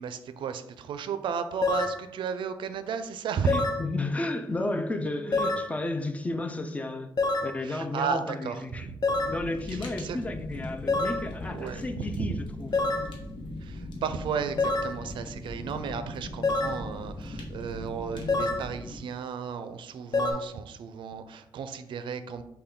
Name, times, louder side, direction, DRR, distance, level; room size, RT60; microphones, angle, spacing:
voice 1, 0.0-3.5 7.6-8.9 9.7-10.2 11.5-11.9 12.1-12.3 13.6-22.4, right 6 dB, 90° right, 10 dB, 0.4 m, -34 dB
sound 1, 1.6-2.0 3.5-3.8 5.3-5.7 7.2-7.5 9.0-9.4 10.9-11.3 12.7-13.1 14.6-15.0 16.4-16.8 18.3-18.7 20.1-20.3, left 3 dB, 60° left, 0.7 m, -26 dB
voice 2, 3.4-7.1 7.4-8.9 9.3-13.1, left 2 dB, 15° left, 6 dB, 0.4 m, -33 dB
Fire, 9.1-19.0, left 1 dB, 85° left, 0.9 m, -39 dB
5.5 x 2.2 x 3.7 m, 0.85 s
wide cardioid pair, 155°, 8 cm